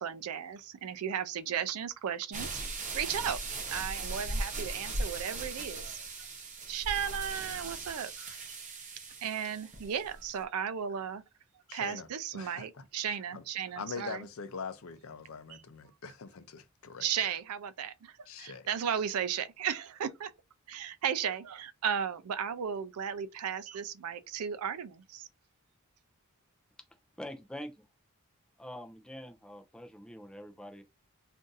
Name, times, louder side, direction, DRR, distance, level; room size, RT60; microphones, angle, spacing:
voice 1, 0.0-2.6 2.9-3.4 3.7-6.0 6.7-8.3 9.2-11.2 11.7-14.3 17.0-18.1 18.4-20.3 20.7-25.3, right 8 dB, 80° right, 0.4 m, -35 dB
sound 1, 2.3-10.3, right 2 dB, 35° right, 0.7 m, -38 dB
voice 2, 11.7-12.1 12.3-13.4 13.8-17.1 18.3-18.7, left 5 dB, 65° left, 0.5 m, -43 dB
voice 3, 27.2-27.8 28.6-30.8, equal, 5° left, 0.4 m, -45 dB
2.6 x 2.5 x 3.8 m
head